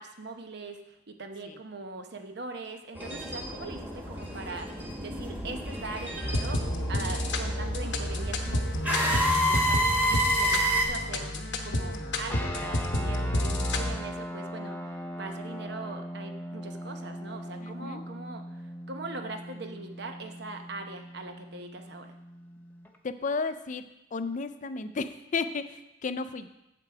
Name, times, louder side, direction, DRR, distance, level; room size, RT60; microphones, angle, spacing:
voice 1, 0.0-4.7 5.0-6.6 6.9-11.3 11.6-22.1, right 3 dB, 65° right, 5 dB, 0.9 m, -41 dB
sound 1, 2.9-10.9, equal, 10° right, 1.5 m, -30 dB
sound 2, 6.2-14.0, left 1 dB, 75° left, 1.0 m, -30 dB
sound 3, 12.3-23.0, equal, 10° left, 0.8 m, -40 dB
voice 2, 17.6-18.0 23.0-23.8 24.1-26.5, left 4 dB, 45° left, 11 dB, 0.5 m, -33 dB
7.7 x 7.4 x 4.9 m, 0.89 s
head